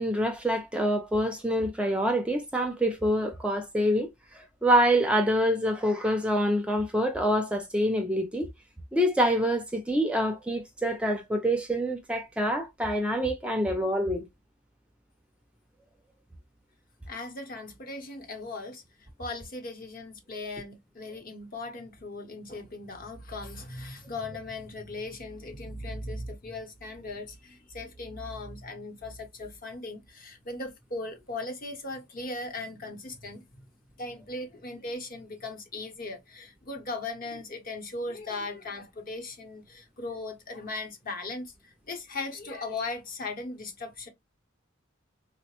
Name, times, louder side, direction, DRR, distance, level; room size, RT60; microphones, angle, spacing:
voice 1, 0.0-8.5 8.9-14.3, equal, 5° right, 0.4 m, -26 dB
voice 2, 17.1-33.4 34.0-44.1, left 2 dB, 45° left, 0.8 m, -38 dB
3.9 x 2.1 x 2.8 m
head